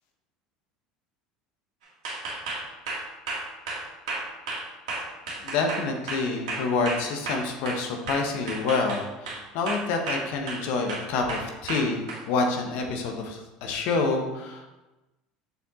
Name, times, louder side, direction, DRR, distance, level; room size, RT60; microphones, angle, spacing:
sound 1, 2.0-7.8 8.1-9.4 9.7-10.6 10.9-12.2, right 3 dB, 85° right, 2.0 m, -32 dB
voice 1, 5.4-14.6, left 3 dB, 65° left, 3 dB, 1.1 m, -28 dB
7.0 x 4.5 x 3.7 m, 1.0 s
hypercardioid pair, 85°, 3 cm